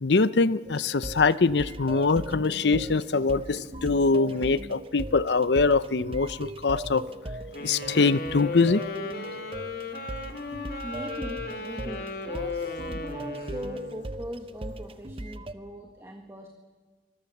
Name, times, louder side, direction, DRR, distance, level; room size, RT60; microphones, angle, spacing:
voice 1, 0.0-7.0 7.6-8.8, left 4 dB, 70° left, 16 dB, 0.7 m, -23 dB
sound 1, 0.6-15.5, right 1 dB, 30° right, 0.9 m, -39 dB
sound 2, 7.5-14.1, left 3 dB, 55° left, 2.9 m, -36 dB
voice 2, 10.8-16.5, equal, 15° right, 3 dB, 1.6 m, -40 dB
24.5 x 20.5 x 7.3 m, 1.5 s
head